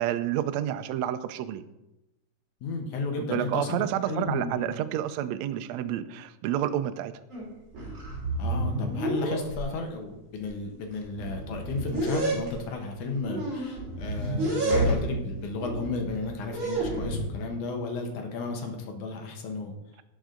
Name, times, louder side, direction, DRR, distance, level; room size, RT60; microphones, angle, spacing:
voice 1, 0.0-1.6 3.2-7.1, right 11 dB, 90° right, 10 dB, 1.5 m, -29 dB
voice 2, 2.6-4.7 8.4-19.7, left 3 dB, 70° left, 3 dB, 2.6 m, -33 dB
sound 1, 7.3-7.5 7.7-9.6 10.4-10.5 10.9-12.5 13.3-15.2 15.6-17.3, right 1 dB, 35° right, 3.6 m, -29 dB
17.5 x 6.2 x 3.8 m, 0.93 s
omnidirectional pair, 3.9 m